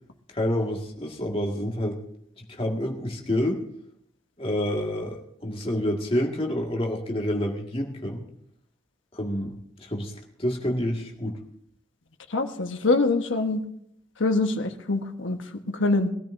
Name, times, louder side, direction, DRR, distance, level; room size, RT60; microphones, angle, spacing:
voice 1, 0.3-2.0 2.4-3.6 4.4-8.2 9.1-10.1 10.4-11.4, left 1 dB, 30° left, 0 dB, 1.9 m, -28 dB
voice 2, 12.3-13.6 14.2-16.1, left 3 dB, 80° left, 5 dB, 1.2 m, -24 dB
22.0 x 13.5 x 2.6 m, 0.73 s
head